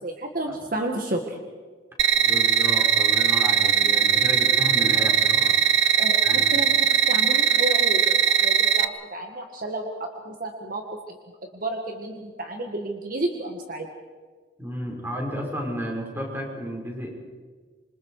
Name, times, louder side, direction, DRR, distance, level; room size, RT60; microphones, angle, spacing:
voice 1, 0.0-1.4 6.0-11.2 11.5-13.9, right 1 dB, 45° right, 3 dB, 2.0 m, -31 dB
sound 1, 2.0-8.8, right 8 dB, 90° right, 1.0 m, -20 dB
voice 2, 2.1-5.5 6.2-6.5 14.6-17.1, equal, 10° right, -1 dB, 5.6 m, -32 dB
27.5 x 25.5 x 5.0 m, 1.5 s
head